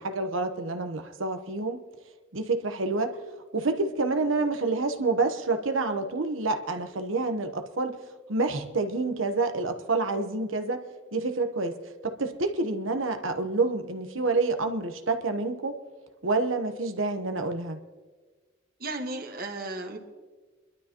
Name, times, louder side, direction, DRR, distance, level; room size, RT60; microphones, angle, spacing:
voice 1, 0.0-1.8 2.3-3.2 3.5-8.0 8.3-11.8 12.0-15.8 16.2-17.8, right 3 dB, 85° right, 1.0 m, -28 dB
voice 2, 18.8-20.0, right 2 dB, 50° right, 1.5 m, -34 dB
26.5 x 12.0 x 3.0 m
head